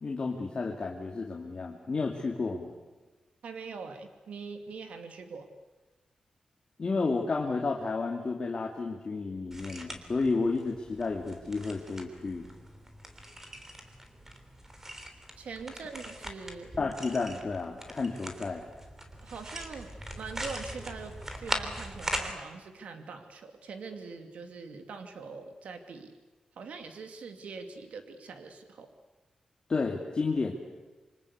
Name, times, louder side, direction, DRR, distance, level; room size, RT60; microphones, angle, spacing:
voice 1, 0.0-2.7 6.8-12.5 16.8-18.6 29.7-30.5, left 4 dB, 40° left, 0 dB, 2.7 m, -31 dB
voice 2, 3.4-5.5 15.4-16.7 19.2-19.9 20.2-26.1 26.6-28.9, right 4 dB, 90° right, 6 dB, 2.6 m, -43 dB
sound 1, 9.5-22.3, right 1 dB, 20° right, 3.3 m, -41 dB
27.5 x 25.0 x 8.3 m, 1.2 s
wide cardioid pair, 130°, 2 cm